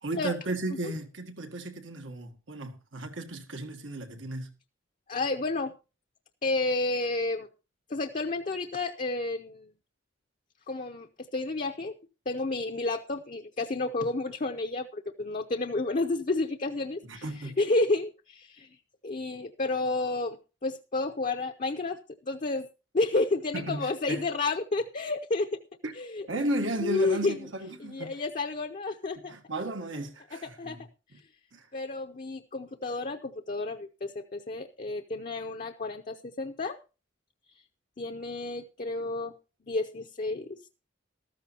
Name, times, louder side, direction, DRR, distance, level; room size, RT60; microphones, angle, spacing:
voice 1, 0.0-4.5 17.1-17.6 23.5-24.2 25.8-25.9 26.3-28.1 29.3-30.8 31.5-31.6, right 1 dB, 85° right, 1.9 m, -34 dB
voice 2, 5.1-5.7 6.4-7.5 7.9-9.7 10.7-11.9 12.3-18.7 19.0-20.4 20.6-22.7 22.9-25.5 25.9-26.3 26.8-27.4 27.8-29.3 30.4-30.8 31.7-36.8 38.0-39.3 39.7-40.7, left 2 dB, 40° left, 0.6 m, -31 dB
13.5 x 13.5 x 2.8 m
head